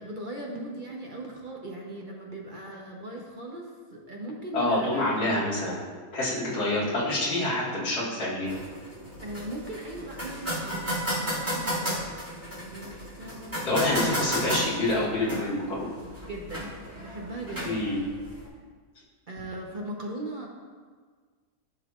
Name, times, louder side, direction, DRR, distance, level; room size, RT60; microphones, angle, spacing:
voice 1, 0.0-5.5 9.2-14.3 16.0-17.8 19.3-20.5, right 1 dB, 40° right, -1 dB, 0.8 m, -39 dB
voice 2, 4.5-5.8 6.1-8.5 13.6-15.9 17.6-18.0, left 2 dB, 65° left, -7 dB, 2.4 m, -27 dB
sound 1, 8.4-18.5, equal, 10° right, 2.2 m, -34 dB
14.0 x 5.6 x 2.5 m, 1.6 s
omnidirectional pair, 1.8 m